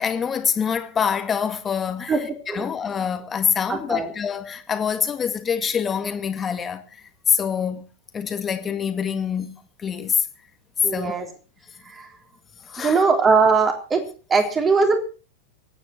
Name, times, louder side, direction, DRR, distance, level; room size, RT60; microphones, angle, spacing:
voice 1, 0.0-7.9 8.1-10.3 10.9-11.2 12.6-13.1, left 7 dB, 20° left, 2.0 m, -25 dB
voice 2, 3.7-4.1 10.8-11.3 11.9-12.1 12.8-14.0 14.3-15.0, right 4 dB, 20° right, 3.5 m, -20 dB
25.0 x 9.5 x 4.4 m
figure-of-eight pair, 90°, 0 cm